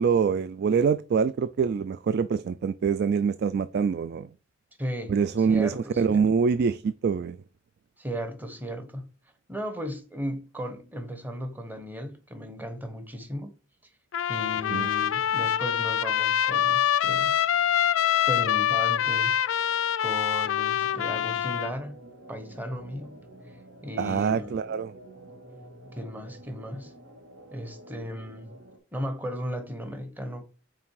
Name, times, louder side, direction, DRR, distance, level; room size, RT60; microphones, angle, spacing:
voice 1, 0.0-4.3 5.1-7.4 14.7-14.9 24.0-24.9, right 6 dB, 55° right, 0.3 m, -25 dB
voice 2, 4.8-6.2 8.0-9.0 9.5-13.5 14.3-17.3 18.3-19.4 20.0-22.0 22.3-23.2 23.8-24.6 25.9-26.9 27.5-28.5 28.9-30.4, equal, 10° right, 1.0 m, -36 dB
Trumpet, 14.1-21.7, left 10 dB, 80° left, 0.4 m, -25 dB
sound 1, 20.8-28.8, right 1 dB, 75° right, 1.9 m, -48 dB
6.0 x 4.5 x 4.7 m
head